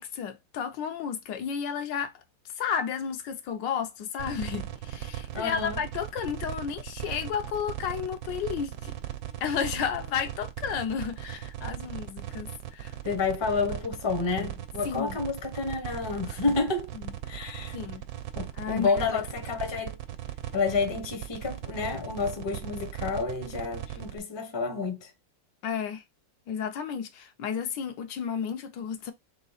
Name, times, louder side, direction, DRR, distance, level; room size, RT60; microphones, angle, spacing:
voice 1, 0.0-2.1 2.6-8.9 9.4-12.9 14.8-15.2 17.7-18.1 18.6-19.2 25.6-26.0 26.5-29.1, left 7 dB, 75° left, 1.3 m, -32 dB
sound 1, 4.2-24.2, right 11 dB, 85° right, 1.3 m, -38 dB
voice 2, 5.3-5.8 13.0-16.9 17.3-17.8 18.3-20.0 20.5-25.1, left 4 dB, 25° left, 0.6 m, -30 dB
3.8 x 3.2 x 4.0 m
omnidirectional pair, 2.0 m